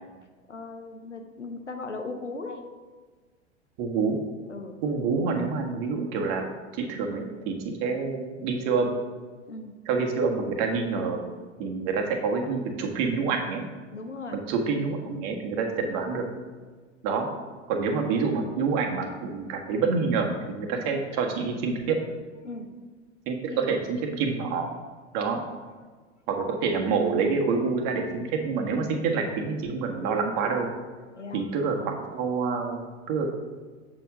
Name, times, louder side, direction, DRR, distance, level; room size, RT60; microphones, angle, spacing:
voice 1, 0.5-2.6 4.5-4.8 9.5-9.7 13.9-14.4 20.7-20.9 22.4-22.7 23.5-23.7 31.1-31.5, left 3 dB, 90° left, 5 dB, 0.9 m, -38 dB
voice 2, 3.8-4.2 4.8-6.5 6.7-8.9 9.8-11.2 11.6-13.7 14.3-16.2 17.0-17.3 17.7-22.0 23.3-24.6 25.1-25.4 26.3-30.7 31.3-33.3, right 4 dB, 45° right, 2 dB, 1.5 m, -27 dB
7.6 x 7.0 x 3.7 m, 1.5 s
figure-of-eight pair, 80°, 35 cm